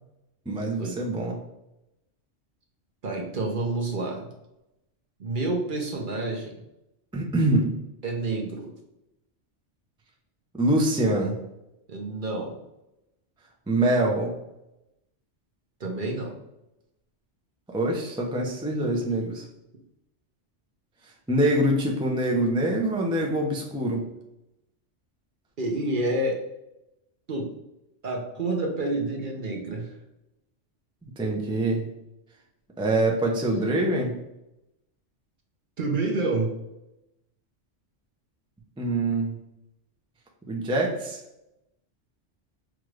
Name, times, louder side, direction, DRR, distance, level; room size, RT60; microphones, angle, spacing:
voice 1, 0.5-1.4 7.1-7.8 10.5-11.4 13.7-14.3 17.7-19.5 21.3-24.0 31.0-31.9 32.8-34.1 38.8-39.4 40.5-41.2, right 1 dB, 5° right, -1 dB, 0.4 m, -24 dB
voice 2, 3.0-4.3 5.2-6.6 8.0-8.7 11.9-12.6 15.8-16.3 25.6-26.4 27.3-27.5 28.0-30.0 35.8-36.6, right 2 dB, 50° right, 1 dB, 0.8 m, -28 dB
6.0 x 2.4 x 3.2 m, 0.90 s
omnidirectional pair, 1.2 m